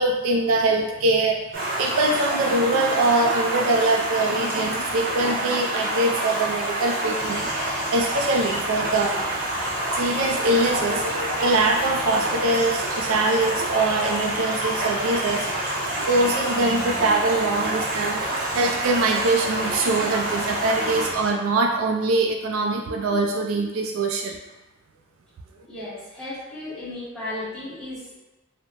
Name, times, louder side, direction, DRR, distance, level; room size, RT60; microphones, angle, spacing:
voice 1, 0.0-7.5 7.9-9.2 9.9-24.4, right 2 dB, 80° right, 2 dB, 0.3 m, -23 dB
Stream, 1.5-21.1, right 1 dB, 45° right, 0.6 m, -27 dB
sound 1, 7.2-21.3, equal, 10° right, 1.5 m, -39 dB
voice 2, 25.6-28.2, left 2 dB, 5° left, -13 dB, 1.5 m, -35 dB
2.7 x 2.1 x 2.8 m, 1.1 s
head